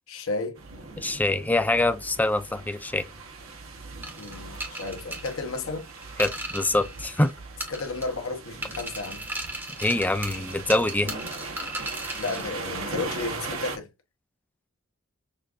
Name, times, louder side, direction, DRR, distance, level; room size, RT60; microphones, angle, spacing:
voice 1, 0.1-0.6 4.2-5.9 7.7-9.3 12.2-13.9, left 3 dB, 90° left, 1.0 m, -33 dB
sound 1, 0.6-13.8, right 3 dB, 85° right, 1.1 m, -39 dB
voice 2, 1.0-3.1 6.2-7.3 9.8-11.1, left 2 dB, 10° left, 0.3 m, -24 dB
sound 2, 4.0-7.3 7.6-8.3 8.6-12.5, right 1 dB, 10° right, 1.2 m, -36 dB
6.5 x 2.6 x 2.4 m
head